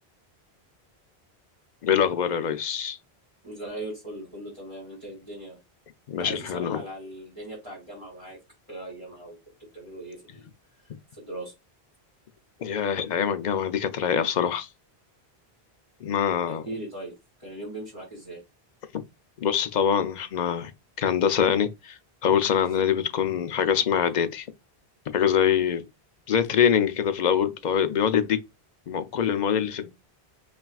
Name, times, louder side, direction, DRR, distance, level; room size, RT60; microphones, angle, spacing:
voice 1, 1.8-3.0 6.1-6.8 12.6-14.7 16.0-16.6 19.4-20.7 21.0-24.5 25.1-25.8 26.3-28.4 28.9-29.9, left 8 dB, 55° left, 0.6 m, -24 dB
voice 2, 3.4-5.6 6.2-8.4 8.7-9.4 9.7-10.4 10.8-11.5 16.5-17.1 17.4-18.4, right 1 dB, 30° right, 2.2 m, -39 dB
5.7 x 2.4 x 2.3 m
omnidirectional pair, 1.1 m